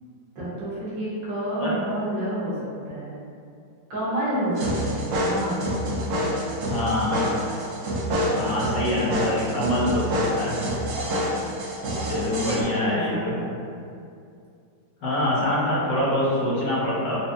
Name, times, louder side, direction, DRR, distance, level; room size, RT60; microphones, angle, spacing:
voice 1, 0.4-3.2 3.9-5.6 11.8-13.5 15.0-15.2, right 1 dB, 90° right, -9 dB, 1.8 m, -30 dB
sound 1, 4.6-12.6, equal, 65° right, 0.8 m, -27 dB
voice 2, 6.7-7.3 8.4-10.6 12.1-13.3 15.0-17.2, left 1 dB, 80° left, -7 dB, 1.6 m, -25 dB
5.2 x 2.2 x 2.6 m, 2.4 s
omnidirectional pair, 1.9 m